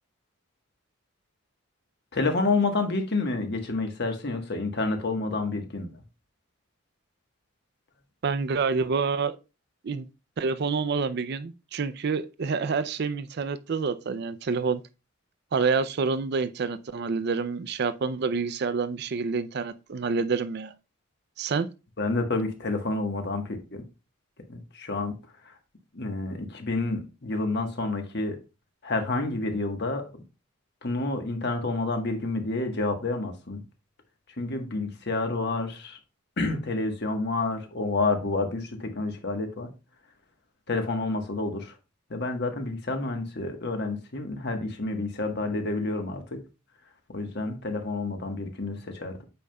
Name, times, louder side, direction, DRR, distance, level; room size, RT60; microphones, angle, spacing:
voice 1, 2.1-5.9 22.0-23.8 24.5-25.1 25.4-25.5 25.9-28.4 28.8-30.0 30.8-33.6 34.4-36.0 36.4-39.7 40.7-41.7 42.1-46.4 47.1-49.2, left 3 dB, 55° left, 1.3 m, -29 dB
voice 2, 8.2-9.4 9.8-10.1 10.4-14.8 15.5-20.7 21.4-21.7, right 5 dB, 50° right, 0.4 m, -28 dB
8.3 x 5.3 x 2.3 m
head